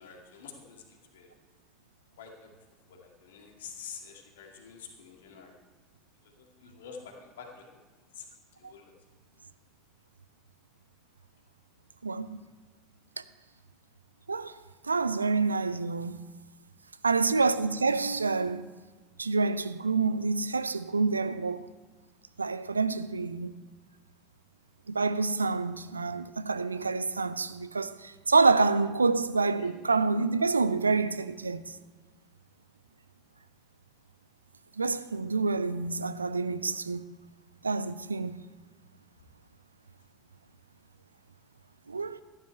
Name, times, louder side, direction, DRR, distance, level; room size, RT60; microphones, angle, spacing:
voice 1, 0.0-1.3 2.2-2.5 2.9-5.5 6.2-7.8 8.1-8.3 8.5-8.9 29.6-29.7, left 6 dB, 70° left, 2.1 m, -48 dB
voice 2, 12.0-12.4 14.3-14.5 14.9-16.2 17.0-18.7 19.2-21.7 22.4-23.5 24.9-31.6 34.8-37.0 37.6-38.4 41.9-42.2, right 4 dB, 85° right, 0.4 m, -27 dB
13.5 x 11.0 x 4.6 m
figure-of-eight pair, 70°, 0 cm